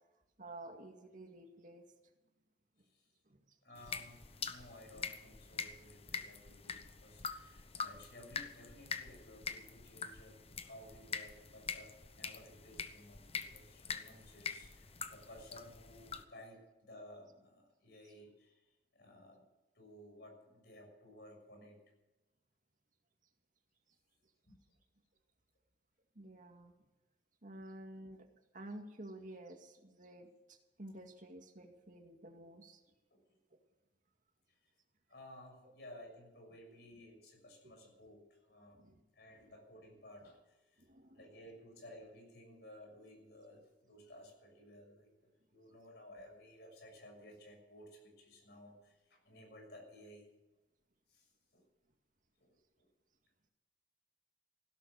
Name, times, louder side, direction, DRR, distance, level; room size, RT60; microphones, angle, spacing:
voice 1, 0.4-1.9 3.3-3.4 26.2-26.7 27.4-28.3 28.5-32.8 37.6-37.7 38.7-39.0 40.8-41.3, right 1 dB, 50° right, 4 dB, 2.2 m, -51 dB
voice 2, 3.6-19.4 19.7-21.8 24.5-24.6 33.1-33.2 35.1-38.9 39.1-40.8 41.1-50.3 51.1-51.3 51.5-51.6 52.4-52.5, left 1 dB, 70° left, 2 dB, 6.5 m, -56 dB
sound 1, 3.7-16.2, left 5 dB, 35° left, 1.0 m, -45 dB
16.5 x 12.0 x 6.6 m, 1.1 s
head